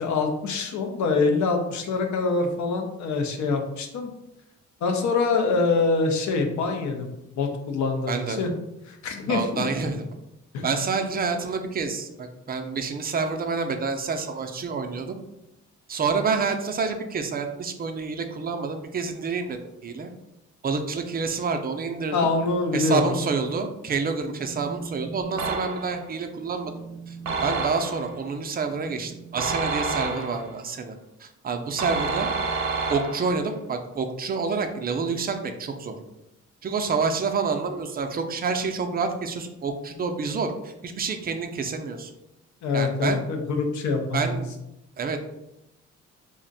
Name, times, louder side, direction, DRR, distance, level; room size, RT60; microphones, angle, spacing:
voice 1, 0.0-4.1 4.8-7.1 7.4-8.5 8.9-9.6 10.5-10.6 22.1-23.0 42.6-44.4, left 4 dB, 70° left, 4 dB, 0.6 m, -25 dB
voice 2, 8.1-8.5 9.3-10.1 10.6-15.2 15.9-20.1 20.6-22.3 22.7-26.7 27.1-27.2 27.4-32.3 32.9-36.0 36.6-42.1 42.7-43.2 44.1-44.5 45.0-45.3, right 4 dB, 30° right, 6 dB, 0.4 m, -28 dB
Telephone, 22.3-23.3 23.6-23.9 24.3-30.4, right 4 dB, 30° left, 0.9 m, -42 dB
sound 1, 25.4-26.1 27.3-28.2 29.4-30.6 31.8-33.4, right 4 dB, 75° right, 0.6 m, -29 dB
2.5 x 2.1 x 3.8 m, 0.88 s
cardioid pair, 90°, 30 cm